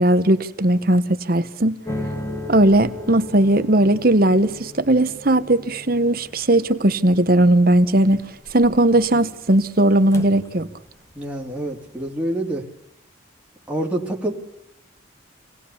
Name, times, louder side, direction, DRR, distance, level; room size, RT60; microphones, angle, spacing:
voice 1, 0.0-1.8 2.5-8.2 8.5-10.7, right 1 dB, 50° right, 1.1 m, -17 dB
sound 1, 1.9-11.1 11.4-12.0, left 1 dB, 15° left, 1.6 m, -36 dB
voice 2, 11.1-12.6 13.7-14.3, right 1 dB, 5° right, 2.7 m, -26 dB
27.0 x 18.5 x 7.1 m
head